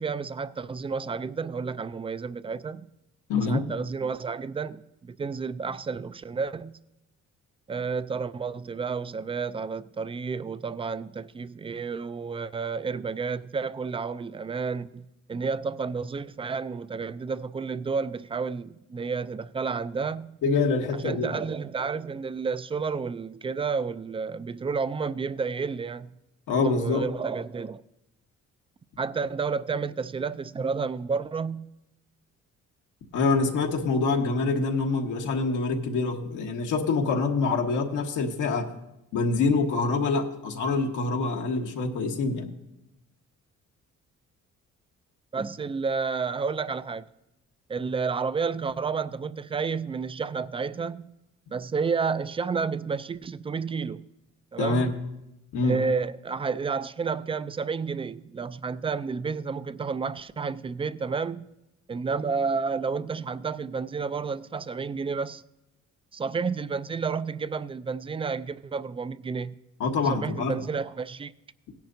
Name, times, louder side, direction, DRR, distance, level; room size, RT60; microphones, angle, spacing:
voice 1, 0.0-2.9 3.4-6.8 7.7-20.4 21.0-26.1 26.6-27.8 29.0-31.7 45.3-47.1 47.7-51.1 51.5-54.1 54.5-55.0 55.6-61.5 61.9-65.4 66.1-69.6 70.1-71.3, right 5 dB, 20° right, 0.3 m, -31 dB
voice 2, 3.3-3.7 20.4-21.4 26.5-27.0 33.1-38.7 39.1-42.5 54.6-54.9 55.5-55.7 69.8-70.6, left 4 dB, 85° left, 1.3 m, -25 dB
17.0 x 10.5 x 2.7 m
cardioid pair, 90°, 30 cm